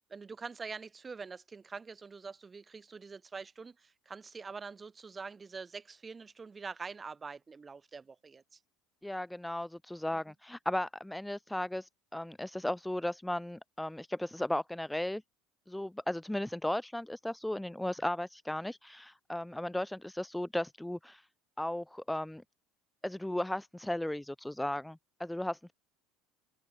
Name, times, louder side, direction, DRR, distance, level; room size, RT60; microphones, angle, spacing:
voice 1, 0.1-8.6 10.1-10.2, right 4 dB, 25° right, 2.4 m, -45 dB
voice 2, 9.0-15.2 15.7-21.2 21.6-22.4 23.0-25.7, left 1 dB, 5° left, 0.5 m, -36 dB
open air
supercardioid pair, 90°, 0 cm